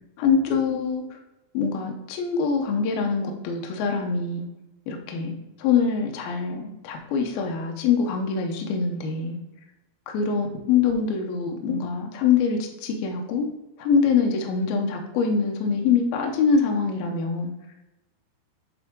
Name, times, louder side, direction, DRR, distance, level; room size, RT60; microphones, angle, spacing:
voice 1, 0.2-1.2 1.5-4.5 4.9-9.4 10.1-13.5 13.8-17.5, left 5 dB, 75° left, 3 dB, 2.4 m, -24 dB
11.0 x 3.7 x 3.7 m, 0.95 s
omnidirectional pair, 5.3 m